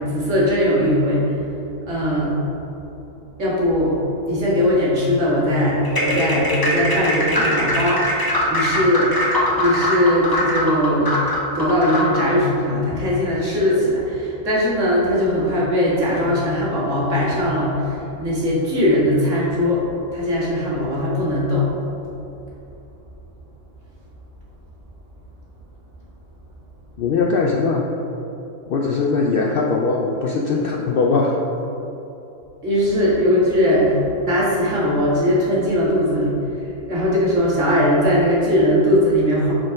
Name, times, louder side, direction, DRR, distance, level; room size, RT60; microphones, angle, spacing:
voice 1, 0.0-1.3 1.9-2.4 3.4-4.0 4.3-9.1 9.6-11.2 11.5-19.9 20.1-21.7 32.6-36.4 36.9-39.5, equal, 65° right, -7 dB, 2.0 m, -19 dB
sound 1, 5.8-12.3, equal, 20° left, 0.6 m, -22 dB
voice 2, 27.0-27.9 28.7-31.4, left 4 dB, 65° left, 0 dB, 0.5 m, -20 dB
6.1 x 4.3 x 5.0 m, 3.0 s
omnidirectional pair, 1.4 m